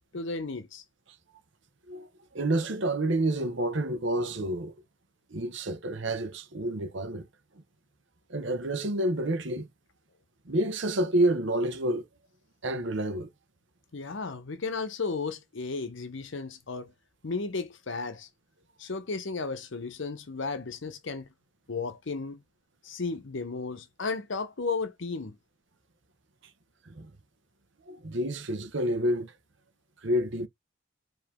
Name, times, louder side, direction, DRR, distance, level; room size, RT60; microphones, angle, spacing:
voice 1, 0.1-0.8 13.9-16.9 17.2-18.3 18.8-21.3 21.7-22.4 22.8-25.4, left 4 dB, 60° left, 0.7 m, -34 dB
voice 2, 2.3-4.7 5.3-7.3 8.3-9.7 10.5-12.0 12.6-13.3 26.9-27.1 27.9-29.3 30.0-30.5, right 1 dB, 60° right, 1.0 m, -28 dB
4.8 x 2.9 x 3.5 m
head